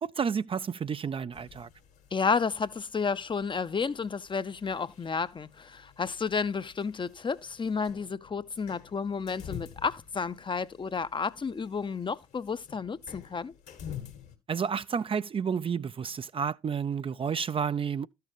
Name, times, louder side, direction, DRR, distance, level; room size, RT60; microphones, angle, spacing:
voice 1, 0.0-1.7 14.5-18.1, right 6 dB, 35° right, 0.4 m, -31 dB
sound 1, 1.3-14.4, left 8 dB, 75° left, 2.1 m, -49 dB
voice 2, 2.1-13.5, left 5 dB, 30° left, 0.6 m, -31 dB
13.0 x 6.6 x 3.0 m
hypercardioid pair, 50°, 16 cm